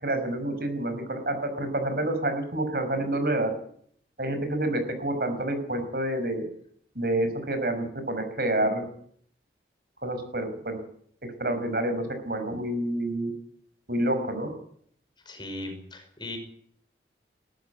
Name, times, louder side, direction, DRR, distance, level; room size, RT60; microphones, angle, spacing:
voice 1, 0.0-3.5 4.2-6.5 7.0-8.8 10.0-10.8 11.4-13.3 13.9-14.5, right 1 dB, 55° right, 8 dB, 5.5 m, -28 dB
voice 2, 15.3-16.4, left 2 dB, 25° left, 5 dB, 5.5 m, -38 dB
21.0 x 13.5 x 9.5 m, 0.63 s
head